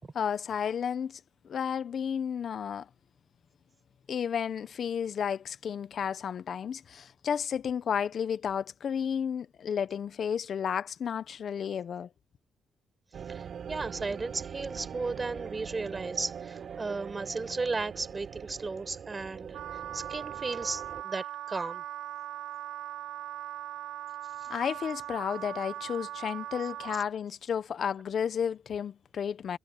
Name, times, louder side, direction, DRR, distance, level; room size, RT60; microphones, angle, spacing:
voice 1, 0.1-2.9 4.1-12.1 24.5-29.6, left 7 dB, 55° left, 1.0 m, -32 dB
sound 1, 13.1-21.0, right 7 dB, 55° right, 6.9 m, -42 dB
voice 2, 13.3-19.6 19.9-21.8, right 3 dB, 25° right, 5.3 m, -35 dB
Wind instrument woodwind instrument, 19.5-27.1, right 12 dB, 90° right, 1.7 m, -40 dB
cardioid pair, 90°, 0 cm